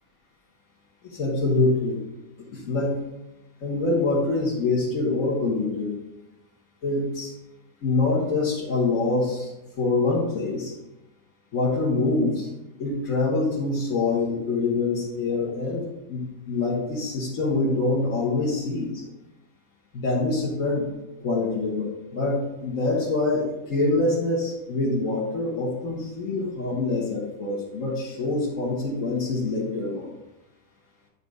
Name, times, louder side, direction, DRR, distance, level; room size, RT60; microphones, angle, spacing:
voice 1, 1.0-2.0 2.5-3.0 3.6-5.9 6.8-7.3 7.8-9.5 9.8-10.7 11.5-12.5 12.8-15.8 16.1-19.1 19.9-20.9 21.2-30.1, left 3 dB, 60° left, -5 dB, 1.6 m, -25 dB
9.1 x 4.1 x 4.9 m, 0.97 s
omnidirectional pair, 1.6 m